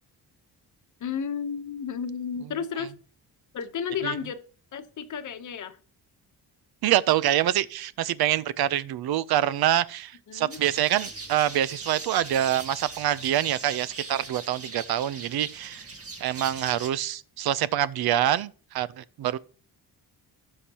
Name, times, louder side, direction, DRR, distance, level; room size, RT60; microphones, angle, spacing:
voice 1, 1.0-2.9 3.5-4.4 4.7-5.8 10.3-10.6, left 7 dB, 50° left, 1.0 m, -32 dB
voice 2, 6.8-15.9 16.2-19.4, right 12 dB, 70° right, 0.6 m, -25 dB
sound 1, 10.5-16.9, right 3 dB, 35° right, 1.7 m, -40 dB
18.0 x 6.5 x 2.9 m
wide cardioid pair, 175°, 39 cm